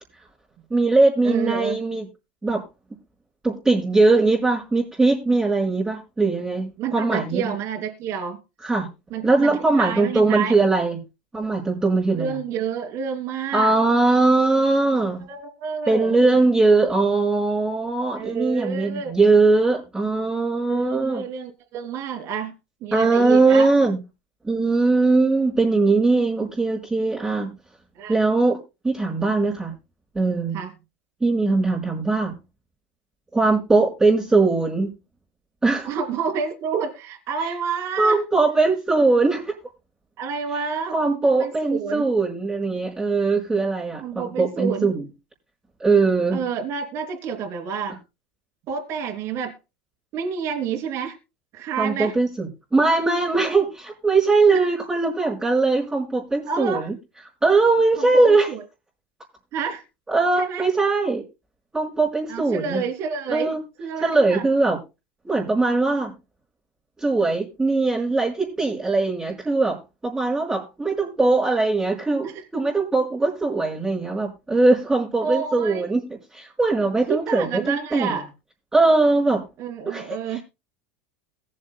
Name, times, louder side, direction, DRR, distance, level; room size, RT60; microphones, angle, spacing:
voice 1, 0.7-2.1 2.4-2.6 3.4-7.5 8.6-8.9 9.2-11.0 11.3-12.4 13.5-15.2 15.9-21.2 22.9-24.0 24.4-27.6 28.1-28.6 28.8-29.7 30.1-30.6 31.2-32.3 33.3-34.9 35.6-35.9 38.0-39.5 40.9-45.0 45.8-46.4 51.8-56.9 57.4-58.5 60.1-61.2 61.7-62.8 63.3-63.6 64.0-64.8 65.2-66.1 67.0-72.3 72.5-78.2 78.7-79.5 79.9-80.4, right 3 dB, 10° right, -4 dB, 4.6 m, -20 dB
voice 2, 1.2-1.8 6.8-8.4 9.1-10.5 12.2-13.7 15.3-16.2 18.1-19.1 20.6-22.5 22.8-23.7 27.9-28.1 30.5-30.7 35.8-38.2 40.2-42.0 44.0-44.9 46.3-48.0 48.7-49.5 50.1-51.2 51.5-52.1 54.5-54.6 56.4-56.9 58.0-58.6 59.5-59.8 60.4-60.7 62.3-63.5 63.8-64.4 72.2-72.4 75.2-75.9 77.1-78.2 79.6-80.4, right 6 dB, 50° right, 1 dB, 3.2 m, -29 dB
22.0 x 7.7 x 2.2 m, 0.27 s
hypercardioid pair, 90°, 6 cm